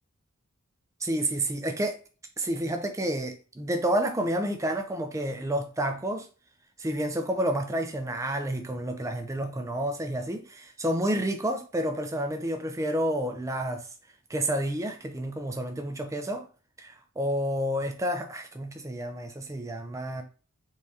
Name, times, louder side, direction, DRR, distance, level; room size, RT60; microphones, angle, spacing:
voice 1, 1.0-2.0 2.4-6.3 6.8-13.9 14.3-16.5 16.8-20.2, right 1 dB, 15° right, 0.4 m, -30 dB
3.7 x 3.3 x 2.7 m
head